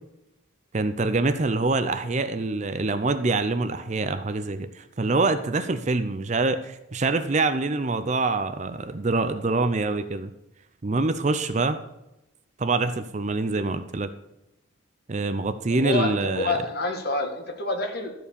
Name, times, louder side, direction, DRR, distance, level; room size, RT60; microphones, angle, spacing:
voice 1, 0.7-10.3 10.8-11.8 12.6-14.1 15.1-16.6, right 3 dB, 35° right, 10 dB, 0.5 m, -25 dB
voice 2, 15.7-18.1, left 2 dB, 50° left, 3 dB, 1.6 m, -28 dB
13.0 x 4.6 x 6.9 m, 0.90 s
head